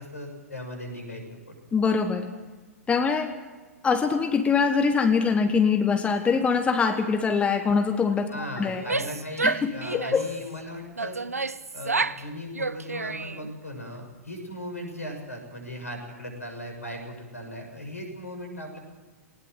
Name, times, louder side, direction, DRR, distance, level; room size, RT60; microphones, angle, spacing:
voice 1, 0.0-1.5 8.3-11.2 11.7-18.8, left 1 dB, 80° left, 4 dB, 6.8 m, -38 dB
voice 2, 1.7-2.3 2.9-3.4 3.8-8.8 9.4-10.2, left 5 dB, 15° left, 7 dB, 1.5 m, -23 dB
Female speech woman speaking / Yell, 8.7-10.3 11.0-12.2 12.5-13.5, right 3 dB, 80° right, 0.7 m, -29 dB
20.0 x 19.5 x 7.8 m, 1.3 s
figure-of-eight pair, 105°, 8 cm